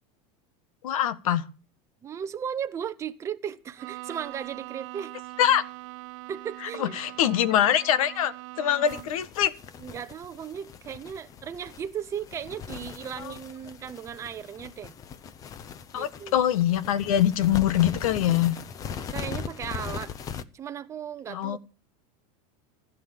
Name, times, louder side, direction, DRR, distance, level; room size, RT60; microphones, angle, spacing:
voice 1, 0.8-1.4 5.4-5.6 6.8-9.5 13.2-13.3 15.9-18.6 21.3-21.6, left 11 dB, 80° left, 1.6 m, -24 dB
voice 2, 2.0-5.1 6.3-7.0 8.8-8.9 9.8-14.9 15.9-16.3 19.1-20.1 20.5-21.6, right 8 dB, 15° right, 0.8 m, -36 dB
Bowed string instrument, 3.8-9.3, right 20 dB, 60° right, 0.9 m, -42 dB
sound 1, 8.9-20.4, left 7 dB, 20° left, 0.7 m, -40 dB
15.5 x 7.8 x 7.4 m
supercardioid pair, 170°, 18 cm